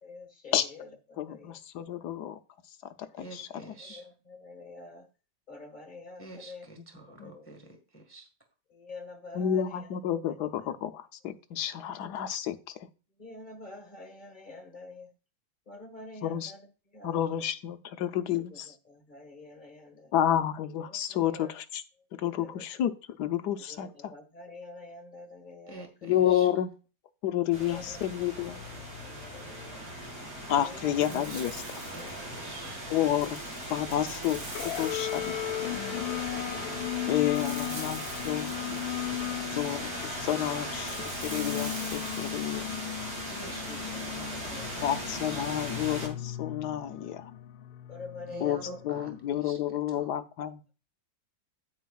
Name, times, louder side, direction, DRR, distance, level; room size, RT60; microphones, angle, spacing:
voice 1, 0.0-1.6 3.8-5.1 5.5-6.7 7.2-7.7 8.7-10.4 13.2-15.1 15.7-16.7 16.9-17.2 18.3-20.1 20.9-21.5 22.4-22.7 23.7-26.1 27.6-29.9 30.5-31.3 32.0-32.3 33.7-34.1 35.8-36.5 37.3-37.5 40.3-40.7 43.7-44.9 47.9-48.8, left 3 dB, 25° left, 4 dB, 1.6 m, -47 dB
voice 2, 1.2-2.4 3.1-3.5 7.2-7.3 9.3-12.7 16.2-16.5 17.0-18.7 20.1-21.8 22.1-22.9 23.2-24.1 26.0-26.7 27.2-28.6 30.5-31.6 32.9-33.4 33.7-35.4 37.1-38.5 39.4-42.7 44.8-47.3 48.4-48.6 48.8-50.7, left 11 dB, 70° left, 9 dB, 1.2 m, -30 dB
voice 3, 3.2-4.1 6.2-8.3 25.7-26.5 31.1-32.8 43.3-45.4 48.3-50.1, right 2 dB, 5° left, 4 dB, 1.3 m, -48 dB
sound 1, 27.5-46.1, right 1 dB, 50° right, 4.9 m, -38 dB
sound 2, 31.0-32.4 33.1-35.6 37.3-39.1 40.9-42.6, right 3 dB, 75° right, 2.7 m, -45 dB
sound 3, 34.5-49.3, left 13 dB, 90° left, 1.4 m, -37 dB
9.3 x 9.1 x 2.4 m, 0.33 s
omnidirectional pair, 2.0 m